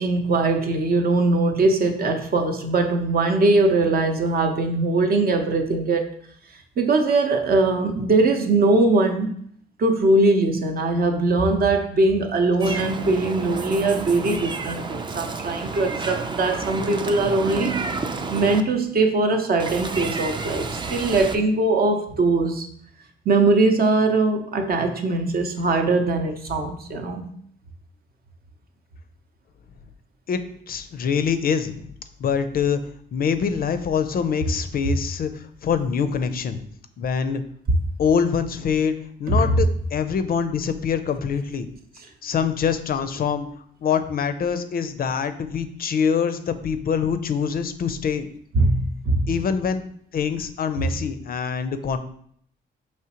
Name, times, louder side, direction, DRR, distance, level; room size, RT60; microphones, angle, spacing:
voice 1, 0.0-6.1 6.8-9.3 9.8-17.9 18.3-22.7 23.3-27.3 39.3-39.5 48.5-49.3, right 2 dB, 50° right, 5 dB, 0.7 m, -21 dB
Meow, 12.6-18.6 19.6-21.4, right 4 dB, 25° right, 0.4 m, -30 dB
voice 2, 30.7-31.9 32.2-32.8 33.1-36.7 37.0-37.4 38.0-41.7 42.2-43.5 43.8-48.3 49.3-49.8 50.1-52.0, left 6 dB, 50° left, 10 dB, 0.4 m, -24 dB
4.9 x 3.1 x 2.9 m, 0.65 s
cardioid pair, 90°, 20 cm